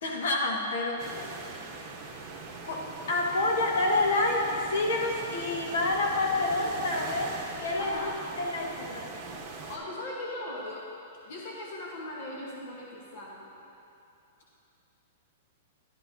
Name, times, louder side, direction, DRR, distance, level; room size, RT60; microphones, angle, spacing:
voice 1, 0.0-1.0 2.6-9.4, left 2 dB, 65° left, 0 dB, 1.4 m, -28 dB
voice 2, 1.0-2.1 7.8-8.2 9.7-10.8 11.2-13.5, left 1 dB, 50° left, -3 dB, 1.1 m, -40 dB
sound 1, 1.0-9.8, right 4 dB, 25° right, 1.0 m, -41 dB
11.5 x 11.0 x 2.6 m, 2.7 s
supercardioid pair, 180°, 0 cm